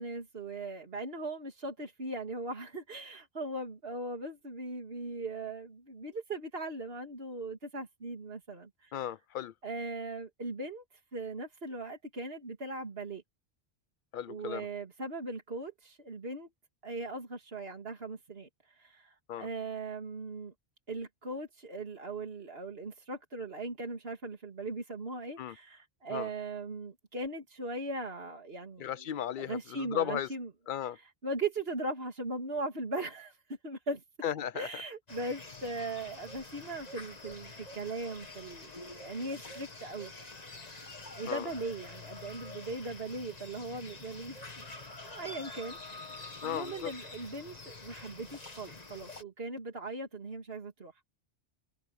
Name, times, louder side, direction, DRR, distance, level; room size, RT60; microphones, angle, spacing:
voice 1, 0.0-8.9 9.6-10.8 11.1-13.2 14.3-16.5 16.8-20.5 20.9-28.9 29.4-30.5 31.2-34.0 34.5-40.1 41.2-44.7 45.0-50.9, right 2 dB, 70° right, 2.8 m, -39 dB
voice 2, 8.9-9.5 14.1-14.7 19.3-19.5 25.4-25.6 26.1-26.3 28.8-30.3 30.7-31.0 34.2-34.8 41.3-41.5 46.4-46.9, left 10 dB, 60° left, 0.7 m, -35 dB
sound 1, 35.1-49.2, left 3 dB, 40° left, 1.8 m, -47 dB
omnidirectional pair, 1.0 m